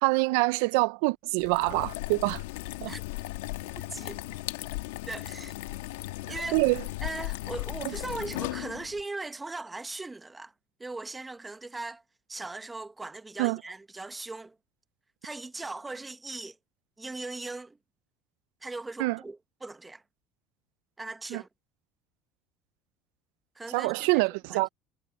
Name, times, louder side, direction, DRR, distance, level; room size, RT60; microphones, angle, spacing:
voice 1, 0.0-2.4 2.8-2.9 6.5-6.8 7.8-7.9 13.4-13.6 19.0-19.2 21.3-21.4 23.7-24.7, right 26 dB, 80° right, 0.4 m, -25 dB
sound 1, 1.4-9.0, left 19 dB, 90° left, 1.6 m, -37 dB
voice 2, 5.1-5.5 6.3-6.6 7.0-10.5 10.8-12.0 12.3-14.5 15.2-16.6 17.0-17.8 18.6-20.0 21.0-21.5 23.5-24.2 24.5-24.6, right 3 dB, 15° right, 1.3 m, -39 dB
supercardioid pair, 90°, 0 cm